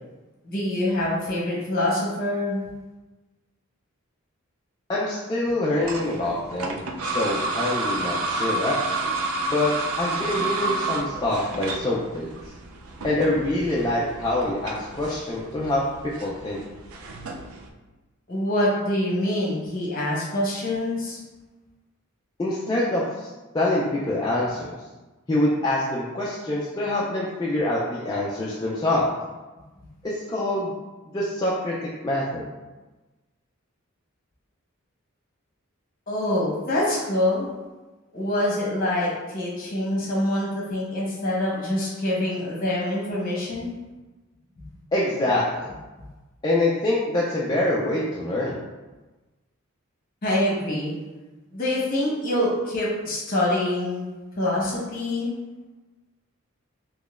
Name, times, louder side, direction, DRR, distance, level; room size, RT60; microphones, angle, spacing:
voice 1, 0.4-2.6 18.3-21.2 36.1-37.5 38.1-43.7 50.2-50.9 51.5-55.3, left 1 dB, 40° left, -5 dB, 1.0 m, -25 dB
voice 2, 4.9-8.8 9.5-12.3 13.0-15.8 16.2-16.6 22.4-24.7 25.3-29.1 30.0-30.7 31.1-31.7 32.0-32.5 44.9-45.7 46.4-48.6, left 1 dB, 20° left, -6 dB, 0.3 m, -25 dB
sound 1, 5.8-17.7, right 2 dB, 80° right, 0.4 m, -30 dB
3.9 x 3.0 x 2.4 m, 1.2 s
head